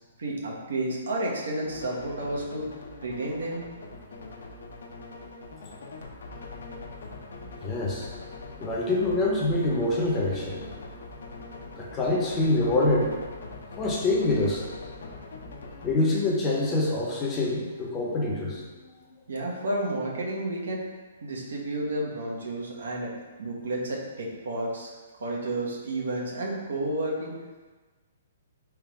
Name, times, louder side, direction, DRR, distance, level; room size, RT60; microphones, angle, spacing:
voice 1, 0.2-2.7 3.0-3.6 19.3-20.8 21.2-23.1 23.4-24.9 25.2-27.3, right 1 dB, 90° right, -3 dB, 1.2 m, -31 dB
sound 1, 1.6-15.9, left 3 dB, 80° left, 0.7 m, -42 dB
voice 2, 7.6-8.1 8.6-10.6 11.8-13.1 13.8-14.7 15.8-18.8, left 2 dB, 15° left, -3 dB, 0.7 m, -25 dB
3.6 x 3.1 x 4.7 m, 1.3 s
hypercardioid pair, 170°, 0 cm